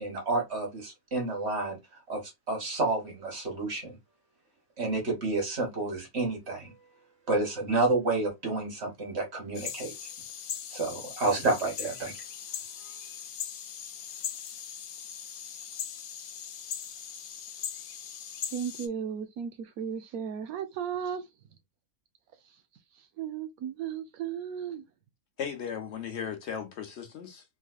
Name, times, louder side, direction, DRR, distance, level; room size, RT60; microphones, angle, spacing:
voice 1, 0.0-1.8 2.1-4.0 4.8-6.7 7.3-9.9 10.7-12.2, right 2 dB, 45° right, 1.9 m, -30 dB
sound 1, 9.5-18.9, left 8 dB, 75° left, 1.1 m, -40 dB
voice 2, 18.5-21.3 22.5-22.6 22.9-24.8, right 8 dB, 80° right, 1.2 m, -35 dB
voice 3, 25.4-27.4, left 7 dB, 55° left, 0.9 m, -36 dB
3.6 x 3.2 x 2.3 m
omnidirectional pair, 1.5 m